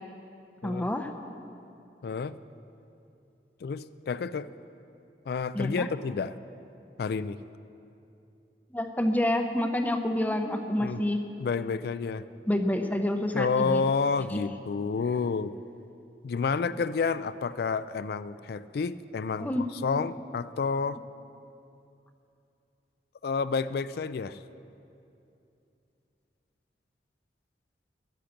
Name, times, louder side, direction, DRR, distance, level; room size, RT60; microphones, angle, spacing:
voice 1, 0.6-1.1 5.5-5.9 8.7-11.2 12.5-13.8 14.3-14.4 19.4-19.7, left 1 dB, 10° left, 6 dB, 0.6 m, -28 dB
voice 2, 2.0-2.4 3.6-4.5 5.3-6.4 7.0-7.4 10.8-11.0 11.4-12.3 13.3-15.6 16.2-21.0 23.2-24.4, left 5 dB, 60° left, 15 dB, 0.3 m, -29 dB
12.0 x 10.0 x 7.2 m, 2.7 s
head